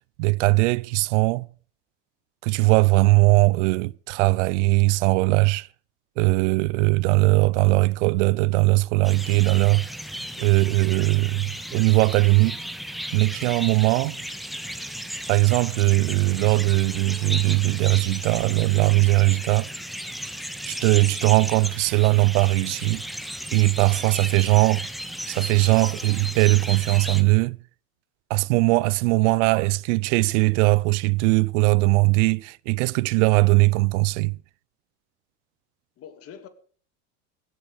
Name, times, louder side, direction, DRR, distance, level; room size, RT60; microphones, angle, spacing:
voice 1, 0.2-1.5 2.4-5.7 6.2-9.9 10.4-12.6 13.1-14.2 15.3-19.7 20.7-23.0 23.5-24.8 25.3-27.6 28.3-34.4, right 25 dB, 75° right, 0.7 m, -20 dB
sound 1, 9.0-27.2, equal, ahead, 1.6 m, -35 dB
voice 2, 36.0-36.5, left 9 dB, 40° left, 3.0 m, -44 dB
16.5 x 13.0 x 5.1 m
supercardioid pair, 125°, 36 cm